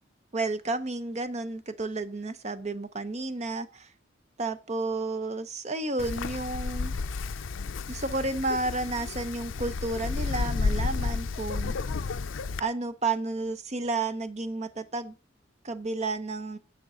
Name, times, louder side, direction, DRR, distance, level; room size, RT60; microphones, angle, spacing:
voice 1, 0.3-3.9 4.4-6.9 7.9-11.7 12.6-15.1 15.6-16.6, right 3 dB, 35° right, 0.7 m, -31 dB
Wind, 6.0-12.6, left 4 dB, 80° left, 0.5 m, -31 dB
10.0 x 7.6 x 3.8 m
head